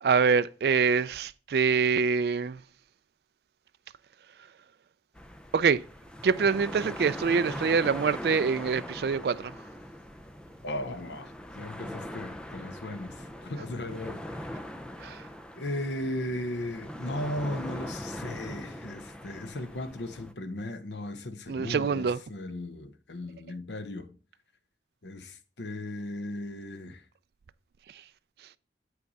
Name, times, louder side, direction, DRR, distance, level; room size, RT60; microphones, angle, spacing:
voice 1, 0.0-2.6 5.5-5.8 6.2-9.5 15.0-15.2 21.5-22.2, right 5 dB, 60° right, 0.3 m, -25 dB
sound 1, 5.1-20.3, equal, 5° left, 0.5 m, -41 dB
voice 2, 10.6-14.5 15.6-24.1 25.0-27.0, left 1 dB, 75° left, 0.8 m, -36 dB
7.8 x 5.8 x 4.0 m
head